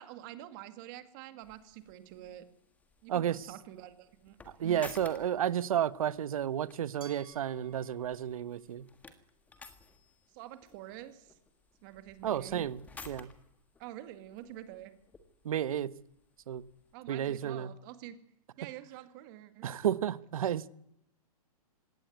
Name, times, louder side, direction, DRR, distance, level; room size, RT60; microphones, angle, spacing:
voice 1, 0.0-2.5 3.0-4.8 10.3-11.3 11.8-12.6 13.8-14.9 16.9-18.2 18.6-19.7, right 13 dB, 30° right, 10 dB, 2.1 m, -47 dB
sound 1, 1.4-16.9, left 4 dB, 10° left, 1.6 m, -56 dB
voice 2, 3.1-3.5 4.6-8.8 12.2-13.3 15.4-15.9 16.5-16.6 17.1-17.7 19.6-20.6, right 10 dB, 65° right, 16 dB, 1.3 m, -32 dB
Glass, 7.0-9.9, right 5 dB, 80° right, 3.4 m, -59 dB
20.5 x 17.5 x 9.3 m, 0.77 s
hypercardioid pair, 160°, 19 cm